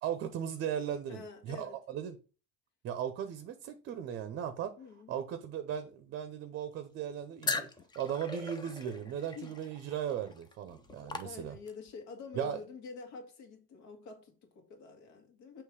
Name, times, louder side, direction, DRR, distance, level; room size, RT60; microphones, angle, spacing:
voice 1, 0.0-2.2 2.8-4.7 5.1-7.7 7.9-11.6 12.3-12.6, right 9 dB, 40° right, 0.6 m, -37 dB
voice 2, 1.1-1.8 4.8-5.1 9.4-9.5 11.2-15.6, left 4 dB, 70° left, 1.8 m, -47 dB
sound 1, 7.4-11.9, left 3 dB, 15° left, 0.4 m, -40 dB
6.5 x 3.1 x 4.7 m
cardioid pair, 155°, 29 cm